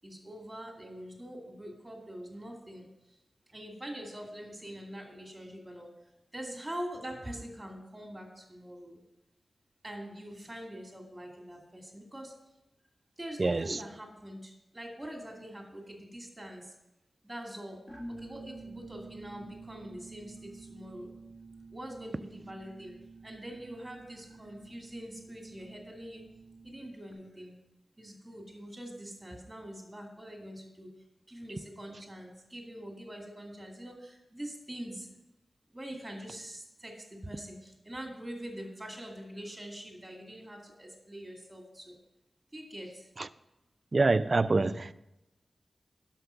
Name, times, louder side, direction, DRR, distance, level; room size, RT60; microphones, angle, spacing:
voice 1, 0.0-3.2 3.5-5.9 6.3-9.0 9.8-12.3 13.2-16.7 17.2-17.8 18.1-21.1 21.7-26.3 26.6-27.6 28.0-30.9 31.3-35.1 35.7-42.0 42.5-43.1, equal, 10° right, 1 dB, 2.3 m, -44 dB
voice 2, 13.4-13.8 43.9-44.9, right 3 dB, 40° right, 12 dB, 0.4 m, -26 dB
sound 1, 17.9-27.1, right 3 dB, 25° left, 1.8 m, -49 dB
11.5 x 6.1 x 5.8 m, 0.92 s
wide cardioid pair, 80°, 0 cm